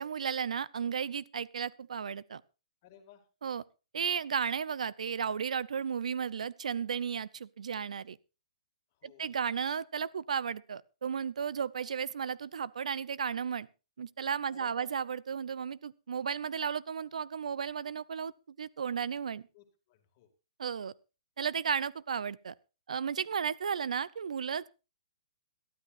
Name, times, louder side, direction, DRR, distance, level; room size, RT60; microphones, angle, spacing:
voice 1, 0.0-2.4 3.4-3.6 3.9-8.2 9.0-13.7 14.0-18.3 18.6-19.4 20.6-20.9 21.4-22.5 22.9-24.7, right 7 dB, 90° right, 21 dB, 0.6 m, -34 dB
voice 2, 2.8-3.2 8.9-9.4 14.5-14.9 19.5-20.3, left 10 dB, 25° left, 5 dB, 2.1 m, -58 dB
22.0 x 12.5 x 2.5 m, 0.30 s
hypercardioid pair, 180°, 4 cm